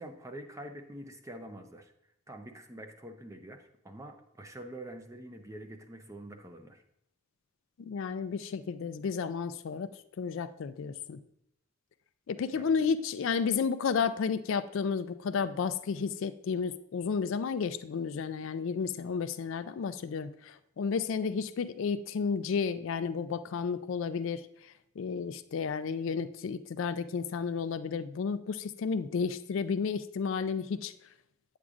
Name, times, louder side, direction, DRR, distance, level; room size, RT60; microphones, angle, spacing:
voice 1, 0.0-1.9 2.3-6.8 12.5-12.7, right 1 dB, 15° right, 6 dB, 0.5 m, -46 dB
voice 2, 7.8-11.2 12.3-30.9, left 5 dB, 60° left, 12 dB, 0.3 m, -32 dB
8.5 x 8.1 x 2.5 m, 0.78 s
head